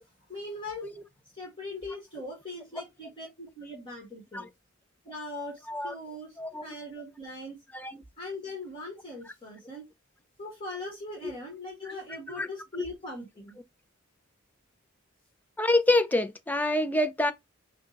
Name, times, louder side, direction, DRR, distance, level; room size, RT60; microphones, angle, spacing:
voice 1, 0.3-0.9 1.3-4.5 5.0-7.6 8.2-9.9 10.4-13.6, left 1 dB, 25° left, 1.6 m, -40 dB
voice 2, 15.6-17.3, left 2 dB, 10° left, 0.3 m, -26 dB
5.1 x 2.3 x 3.8 m
head